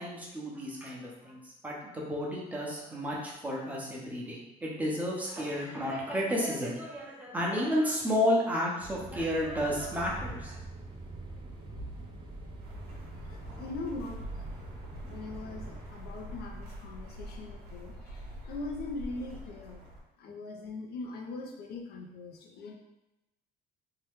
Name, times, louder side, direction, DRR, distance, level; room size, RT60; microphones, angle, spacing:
voice 1, 0.0-10.6, equal, 10° right, -4 dB, 0.9 m, -32 dB
sound 1, 8.8-15.9, right 2 dB, 30° right, 0.6 m, -44 dB
sound 2, 12.6-20.0, equal, 70° right, 0.9 m, -45 dB
voice 2, 13.3-14.5 15.0-19.8 20.2-22.8, left 3 dB, 65° left, 2 dB, 0.5 m, -41 dB
2.8 x 2.2 x 3.5 m, 0.96 s
cardioid pair, 110°, 17 cm